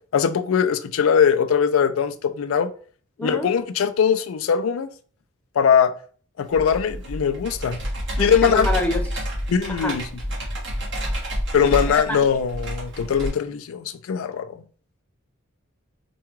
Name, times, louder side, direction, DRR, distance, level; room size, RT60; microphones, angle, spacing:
voice 1, 0.1-2.7 3.2-4.9 5.6-5.9 6.4-7.8 8.2-8.7 9.5-10.1 11.5-14.6, left 7 dB, 75° left, 0.4 m, -21 dB
voice 2, 3.2-3.5 8.2-9.2 9.7-10.0 11.8-12.2, left 1 dB, 5° left, 0.5 m, -27 dB
Computer keyboard, 6.5-13.3, equal, 60° right, 1.4 m, -29 dB
4.7 x 2.2 x 3.0 m
head